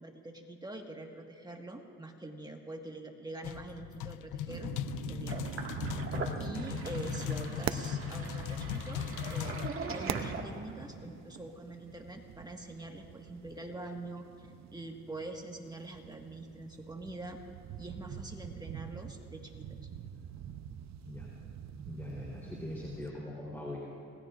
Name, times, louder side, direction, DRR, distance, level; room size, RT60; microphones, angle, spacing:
voice 1, 0.0-5.4 6.4-17.4 17.8-19.8, right 2 dB, 15° right, 2 dB, 1.6 m, -45 dB
sound 1, 3.4-9.7, left 10 dB, 80° left, 0.6 m, -38 dB
sound 2, 4.5-23.1, right 9 dB, 60° right, 0.7 m, -44 dB
Sink (filling or washing), 5.3-10.9, right 4 dB, 45° right, 1.9 m, -41 dB
voice 2, 21.8-23.8, left 1 dB, 10° left, -5 dB, 3.6 m, -41 dB
26.5 x 19.0 x 2.5 m, 2.7 s
cardioid pair, 90°, 30 cm